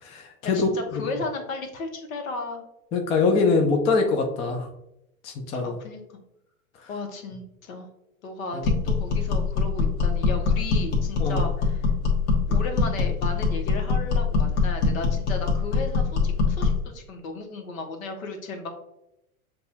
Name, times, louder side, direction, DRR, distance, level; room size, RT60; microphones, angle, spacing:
voice 1, 0.0-0.7 2.9-4.7 5.2-5.8 8.5-8.7 11.2-11.4, left 4 dB, 15° left, 3 dB, 0.3 m, -23 dB
voice 2, 0.5-2.6 5.6-6.2 6.9-7.9 8.2-11.9 12.5-18.7, left 3 dB, 70° left, 5 dB, 1.1 m, -35 dB
sound 1, 8.6-16.8, left 4 dB, 50° left, 1.3 m, -23 dB
6.7 x 2.3 x 2.7 m, 0.83 s
hypercardioid pair, 95°, 43 cm